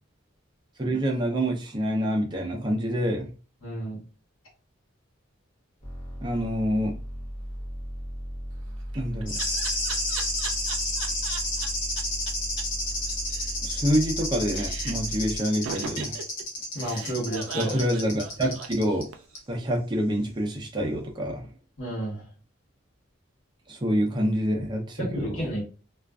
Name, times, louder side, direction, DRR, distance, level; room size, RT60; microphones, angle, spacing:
voice 1, 0.8-3.3 6.2-6.9 8.9-9.4 13.6-16.2 17.6-19.0 19.5-21.5 23.7-25.3, equal, 25° right, 1 dB, 0.5 m, -27 dB
voice 2, 3.6-4.0 16.7-17.8 21.8-22.2 25.0-25.6, right 1 dB, 90° left, -6 dB, 1.1 m, -31 dB
sound 1, 5.8-15.4, equal, 30° left, 0.7 m, -36 dB
Laughter, 8.6-11.7 12.0-12.1 12.3-12.4 12.6-12.7 12.9-14.2 14.5-15.1 15.6-19.4, right 6 dB, 75° right, 0.4 m, -38 dB
sound 2, 9.3-19.0 19.4-19.5, left 1 dB, 65° left, 0.8 m, -31 dB
2.4 x 2.4 x 2.2 m, 0.36 s
head